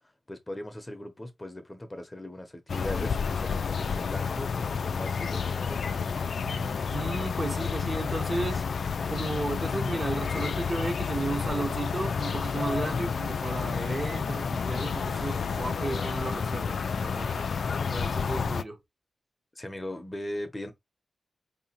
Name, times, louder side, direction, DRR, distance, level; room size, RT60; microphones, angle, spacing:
voice 1, 0.3-6.7 19.6-20.7, left 1 dB, 15° left, 0.8 m, -39 dB
sound 1, 2.7-18.6, left 6 dB, 65° left, 0.3 m, -30 dB
voice 2, 6.9-8.6 9.1-17.5 17.9-18.8, right 2 dB, 25° right, 0.8 m, -34 dB
Bowed string instrument, 11.2-16.7, right 5 dB, 75° right, 0.8 m, -54 dB
4.7 x 2.8 x 2.9 m
wide cardioid pair, 145°, 0 cm